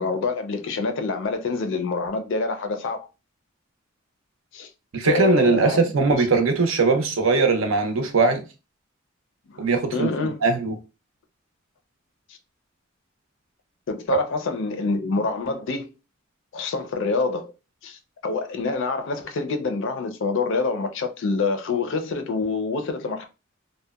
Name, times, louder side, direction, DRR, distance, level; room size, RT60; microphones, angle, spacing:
voice 1, 0.0-3.1 4.5-4.7 5.1-6.1 9.9-10.4 13.9-15.9 16.5-17.5 17.8-23.2, left 4 dB, 65° left, 0.4 m, -26 dB
voice 2, 4.9-8.4 9.6-10.1 10.4-10.8 14.1-14.2, right 4 dB, 70° right, 0.5 m, -20 dB
2.7 x 2.1 x 2.3 m
head